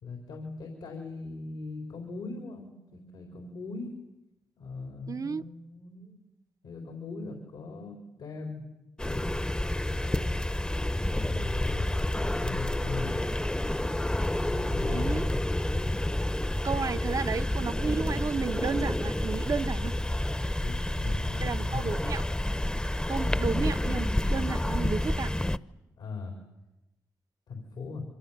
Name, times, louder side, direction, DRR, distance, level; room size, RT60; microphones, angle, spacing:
voice 1, 0.0-3.9 4.6-6.2 6.6-8.6 9.0-9.2 9.9-10.3 11.1-13.2 14.5-15.2 20.6-21.9 23.4-23.6 26.0-26.4 27.5-28.0, left 4 dB, 90° left, 4.3 m, -40 dB
voice 2, 5.1-5.4 14.9-15.3 16.6-20.0 21.4-22.2 23.1-25.3, right 5 dB, 50° right, 0.9 m, -32 dB
sound 1, 9.0-25.6, left 1 dB, 10° left, 0.9 m, -29 dB
27.5 x 25.0 x 7.4 m
cardioid pair, 55°, 7 cm